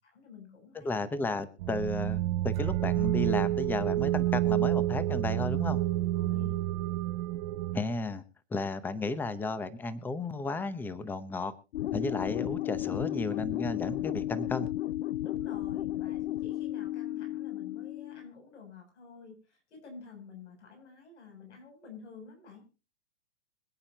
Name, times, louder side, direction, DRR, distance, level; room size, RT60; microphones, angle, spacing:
voice 1, 0.0-1.0 6.1-6.6 15.2-22.6, left 5 dB, 80° left, 2 dB, 7.7 m, -50 dB
voice 2, 0.7-5.8 7.7-8.2 8.5-11.5 11.9-14.7, left 3 dB, 5° left, 13 dB, 0.8 m, -33 dB
sound 1, 1.6-7.8, right 14 dB, 35° right, 0.5 m, -29 dB
sound 2, 11.7-18.3, left 14 dB, 60° left, 0.6 m, -34 dB
26.0 x 8.7 x 2.9 m, 0.32 s
hypercardioid pair, 140°, 34 cm